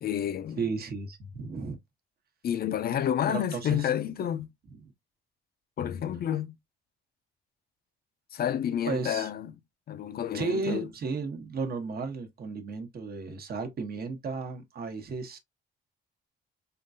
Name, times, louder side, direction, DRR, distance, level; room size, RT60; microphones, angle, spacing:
voice 1, 0.0-0.6 2.4-4.5 5.8-6.5 8.3-9.5 9.9-10.9, left 10 dB, 50° left, 0.5 m, -29 dB
voice 2, 0.6-1.8 3.3-3.9 4.8-4.9 8.8-9.3 10.3-15.4, right 4 dB, 50° right, 1.1 m, -34 dB
3.7 x 2.3 x 2.6 m
cardioid pair, 90°, 20 cm